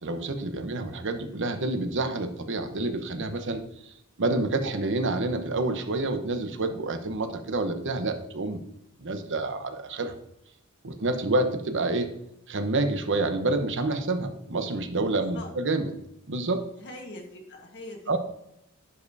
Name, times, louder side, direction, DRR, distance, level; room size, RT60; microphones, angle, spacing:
voice 1, 0.0-8.6 9.0-10.1 10.8-12.1 12.5-15.9 16.3-16.7 18.1-18.2, right 2 dB, 55° right, 8 dB, 0.9 m, -28 dB
voice 2, 15.1-15.5 16.8-18.2, left 1 dB, 50° left, 1 dB, 1.5 m, -43 dB
11.0 x 5.3 x 2.7 m, 0.77 s
head